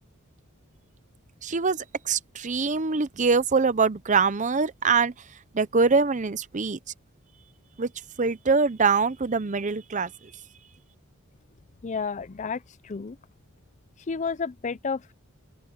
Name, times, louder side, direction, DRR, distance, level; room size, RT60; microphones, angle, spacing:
voice 1, 1.4-5.1 5.5-6.8 7.8-7.9 8.2-10.1, right 4 dB, 35° right, 0.7 m, -23 dB
voice 2, 11.8-13.2 14.1-15.1, left 5 dB, 35° left, 0.5 m, -31 dB
open air
head